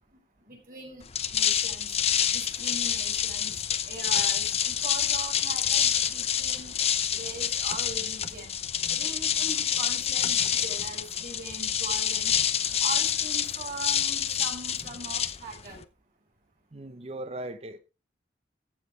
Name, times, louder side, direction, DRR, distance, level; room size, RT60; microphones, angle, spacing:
voice 1, 0.4-3.5 3.8-6.8 7.1-8.5 8.9-12.3 12.8-15.8, right 3 dB, 50° right, 5.8 m, -41 dB
sound 1, 1.0-15.8, left 9 dB, 35° left, 0.7 m, -27 dB
sound 2, 2.9-3.1 4.3-4.5 5.8-6.0 7.2-7.4 8.6-8.8, equal, 65° left, 3.6 m, -56 dB
voice 2, 16.7-17.8, right 1 dB, 35° right, 0.9 m, -38 dB
14.5 x 7.5 x 4.5 m
head